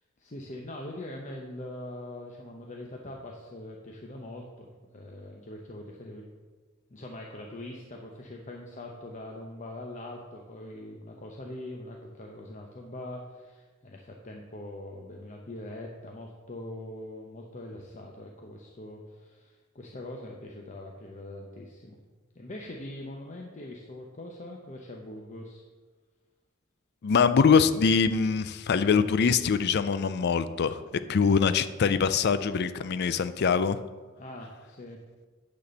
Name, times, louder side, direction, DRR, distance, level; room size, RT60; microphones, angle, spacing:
voice 1, 0.2-6.2 6.9-22.0 22.3-25.6 31.0-31.3 34.2-35.0, left 1 dB, 35° left, 0 dB, 0.8 m, -42 dB
voice 2, 27.0-30.8 31.1-33.8, left 6 dB, 50° left, 13 dB, 0.4 m, -23 dB
9.6 x 4.2 x 6.7 m, 1.4 s
head